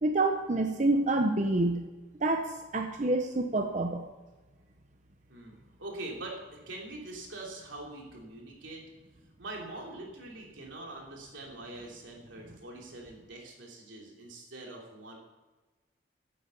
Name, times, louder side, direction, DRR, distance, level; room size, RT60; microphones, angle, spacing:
voice 1, 0.0-1.9 2.2-4.1, right 2 dB, 40° right, 4 dB, 0.7 m, -27 dB
voice 2, 5.3-8.8 9.4-15.2, right 2 dB, 85° right, -1 dB, 3.1 m, -43 dB
9.9 x 8.6 x 6.8 m, 1.2 s
head